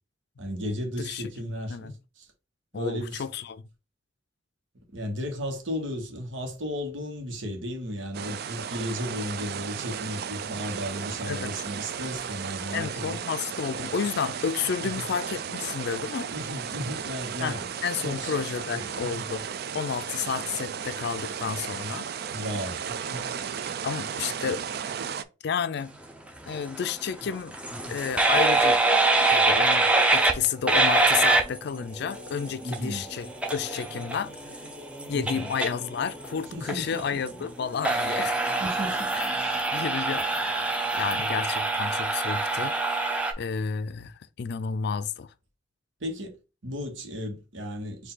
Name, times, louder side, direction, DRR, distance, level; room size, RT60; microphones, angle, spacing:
voice 1, 0.4-2.3 2.7-3.2 4.9-13.2 14.8-15.1 16.3-17.7 18.0-18.3 18.7-19.2 22.3-23.3 27.9-28.0 32.6-33.1 35.1-35.4 36.5-37.0 38.6-39.6 46.0-46.4 46.6-48.1, equal, 85° right, 1.3 m, -34 dB
voice 2, 1.0-1.9 2.7-3.6 11.3-11.5 12.7-16.3 17.4-19.4 19.7-22.1 23.8-24.6 25.4-26.0 26.5-27.6 27.9-28.8 29.3-34.4 35.1-38.4 39.1-39.3 39.7-40.7 40.9-42.7 43.4-45.3, left 6 dB, 60° left, 0.4 m, -31 dB
sound 1, 8.1-25.2, right 7 dB, 55° right, 0.4 m, -35 dB
sound 2, 26.4-43.3, right 2 dB, 5° right, 0.6 m, -25 dB
4.5 x 2.7 x 3.9 m
head